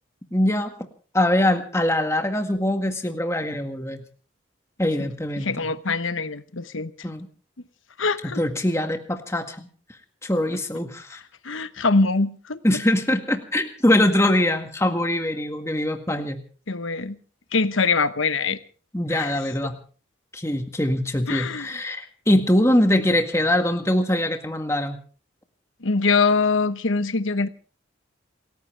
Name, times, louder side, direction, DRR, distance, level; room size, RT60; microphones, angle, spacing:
voice 1, 0.3-0.7 1.1-4.0 4.8-5.7 7.0-7.3 8.3-9.7 10.2-11.2 12.6-16.4 18.9-19.8 20.3-25.0, left 1 dB, 15° left, 1.8 m, -23 dB
voice 2, 5.4-6.9 8.0-8.4 11.4-12.6 16.7-17.2 17.5-18.6 19.1-19.4 21.3-21.8 25.8-27.5, left 4 dB, 85° left, 1.1 m, -23 dB
28.5 x 14.5 x 3.4 m
head